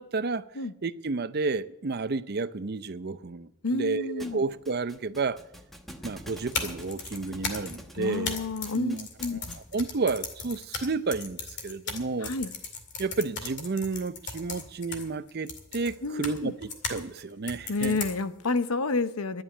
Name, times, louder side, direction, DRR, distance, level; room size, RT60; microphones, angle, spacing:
voice 1, 0.0-0.5 0.8-5.4 6.0-8.4 8.7-9.4 9.7-12.3 13.0-18.0, right 3 dB, 50° right, 0.6 m, -31 dB
voice 2, 3.6-4.4 8.0-9.6 12.2-12.5 16.0-16.5 17.7-19.4, left 3 dB, 85° left, 0.8 m, -30 dB
Thump thud, 4.2-9.8, equal, ahead, 1.1 m, -47 dB
sound 1, 6.3-17.0 17.5-18.5, left 5 dB, 55° left, 2.3 m, -37 dB
11.5 x 9.1 x 9.9 m
head